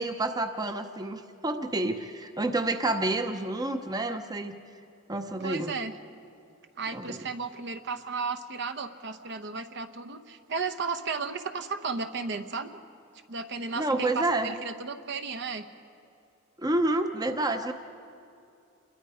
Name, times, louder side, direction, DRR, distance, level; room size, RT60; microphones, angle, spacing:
voice 1, 0.0-4.6 5.1-5.7 6.9-7.2 13.8-14.5 16.6-17.7, right 2 dB, 20° right, 7 dB, 0.7 m, -29 dB
voice 2, 5.4-5.9 6.8-12.7 13.3-15.7, right 4 dB, 60° right, 9 dB, 1.0 m, -34 dB
28.0 x 21.5 x 5.0 m, 2.6 s
head